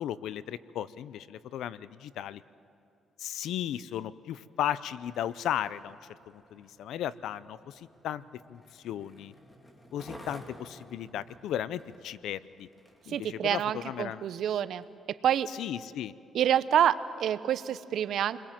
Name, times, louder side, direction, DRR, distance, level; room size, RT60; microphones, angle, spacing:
voice 1, 0.0-2.4 3.2-6.0 6.3-8.2 8.5-9.3 9.9-12.7 13.1-14.2 15.6-16.1, left 11 dB, 80° left, 17 dB, 0.6 m, -35 dB
Skateboard, 5.1-13.8 14.5-14.6, equal, 15° left, 3.4 m, -53 dB
voice 2, 13.1-14.8 15.2-15.5 16.3-18.4, right 10 dB, 70° right, 14 dB, 0.8 m, -27 dB
29.0 x 21.5 x 7.6 m, 2.7 s
cardioid pair, 90°, 0 cm